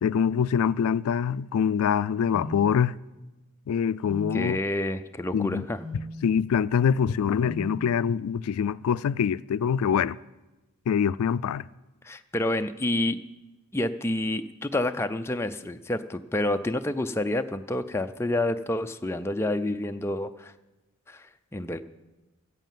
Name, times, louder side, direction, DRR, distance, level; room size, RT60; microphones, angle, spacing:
voice 1, 0.0-2.9 3.7-4.6 5.3-5.7 6.2-10.2 10.9-11.6, left 7 dB, 85° left, 0.3 m, -24 dB
sound 1, 2.3-2.5 4.0-4.3 5.7-6.0 7.4-7.7, left 1 dB, 45° right, 5.7 m, -37 dB
voice 2, 4.3-5.8 12.0-13.2 13.7-20.5 21.1-21.8, left 1 dB, 10° left, 0.4 m, -28 dB
14.5 x 8.2 x 7.5 m
head